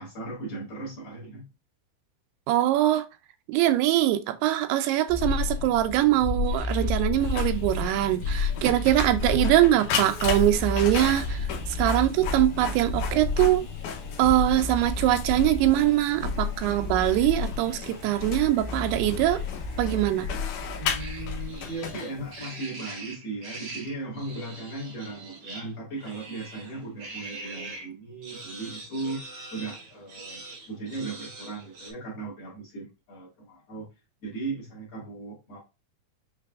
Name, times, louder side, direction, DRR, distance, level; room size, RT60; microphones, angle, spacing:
voice 1, 0.0-1.5 20.8-33.9 34.2-35.6, right 3 dB, 50° left, 2.1 m, -37 dB
voice 2, 2.5-3.1 3.5-11.4 11.7-13.7 14.2-19.4 19.8-20.3, right 14 dB, 85° right, 2.6 m, -23 dB
sound 1, 5.1-21.7, left 3 dB, 70° left, 0.8 m, -31 dB
Printer, 7.2-22.6, left 7 dB, 90° left, 1.8 m, -37 dB
sound 2, 21.0-27.9 28.2-31.9, right 3 dB, 70° right, 1.3 m, -42 dB
5.8 x 3.3 x 2.3 m
omnidirectional pair, 4.6 m